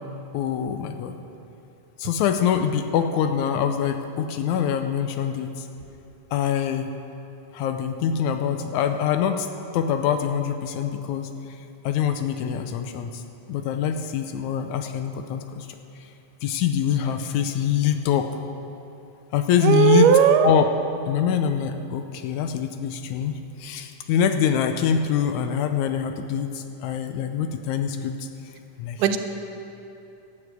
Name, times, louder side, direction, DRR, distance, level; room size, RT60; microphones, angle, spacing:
voice 1, 0.3-1.2 2.0-5.7 6.3-6.9 7.5-9.5 9.7-11.6 11.8-13.2 13.5-16.1 16.4-18.4 19.3-20.1 20.4-20.7 21.1-28.3 28.8-29.1, left 8 dB, 80° left, 7 dB, 1.9 m, -24 dB
voice 2, 19.6-20.5 29.0-29.2, right 8 dB, 85° right, 7 dB, 2.3 m, -16 dB
12.0 x 9.3 x 8.0 m, 2.8 s
omnidirectional pair, 3.6 m